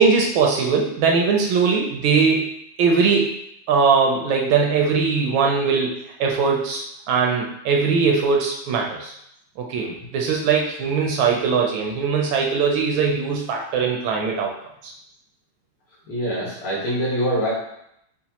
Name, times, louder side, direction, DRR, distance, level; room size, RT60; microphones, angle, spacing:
voice 1, 0.0-3.3 3.7-9.1 9.6-9.9 10.1-14.5 14.8-14.9, right 5 dB, 75° right, 0 dB, 1.2 m, -20 dB
voice 2, 9.8-10.1 16.1-17.5, equal, 85° left, -6 dB, 2.2 m, -25 dB
5.0 x 2.4 x 2.8 m, 0.77 s
omnidirectional pair, 2.4 m